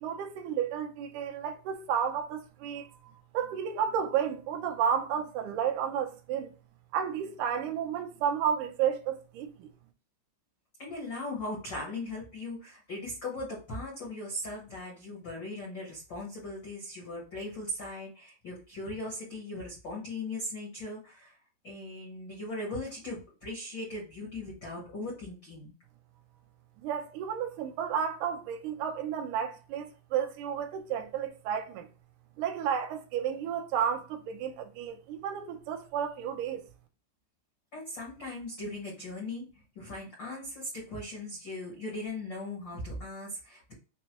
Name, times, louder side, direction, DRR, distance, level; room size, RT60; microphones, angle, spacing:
voice 1, 0.0-6.5 6.9-9.7 26.8-31.9 32.4-36.6, right 8 dB, 80° right, 1.8 m, -32 dB
voice 2, 10.8-21.4 21.6-25.7 37.7-43.7, left 2 dB, 75° left, 1.0 m, -39 dB
6.0 x 2.2 x 2.9 m
omnidirectional pair, 4.6 m